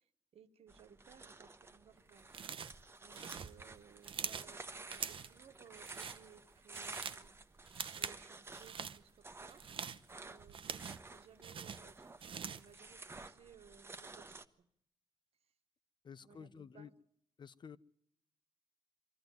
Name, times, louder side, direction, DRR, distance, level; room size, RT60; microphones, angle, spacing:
voice 1, 0.0-2.3 3.0-9.6 10.2-14.7 16.2-16.9, right 7 dB, 80° right, 1.5 m, -62 dB
sound 1, 0.7-14.4, right 3 dB, 25° right, 1.1 m, -52 dB
sound 2, 2.3-2.8 3.1-4.5 4.9-5.4 5.8-6.2 6.6-7.3 7.7-8.2 8.5-9.0 9.5-11.1 11.4-12.7, right 7 dB, 60° right, 0.8 m, -44 dB
voice 2, 16.0-16.9 17.4-17.8, left 6 dB, 50° left, 0.8 m, -52 dB
23.5 x 14.0 x 9.3 m
wide cardioid pair, 125°, 10 cm